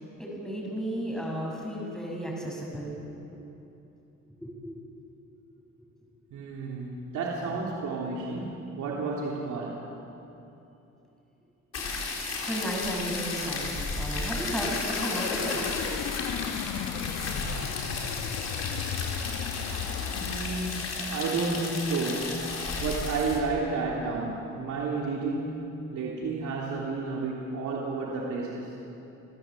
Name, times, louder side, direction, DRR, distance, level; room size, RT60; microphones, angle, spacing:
voice 1, 0.0-2.9 4.4-4.7 11.8-11.9 12.2-15.6 18.2-18.3, equal, ahead, -2 dB, 7.4 m, -34 dB
voice 2, 6.3-9.8 20.1-22.5 22.8-25.6 25.9-28.7, right 3 dB, 75° right, -3 dB, 3.1 m, -31 dB
sound 1, 11.7-23.4, left 3 dB, 55° left, 4.2 m, -33 dB
sound 2, 15.0-21.4, left 8 dB, 85° left, 1.2 m, -35 dB
28.0 x 15.0 x 7.6 m, 2.9 s
cardioid pair, 90°, 30 cm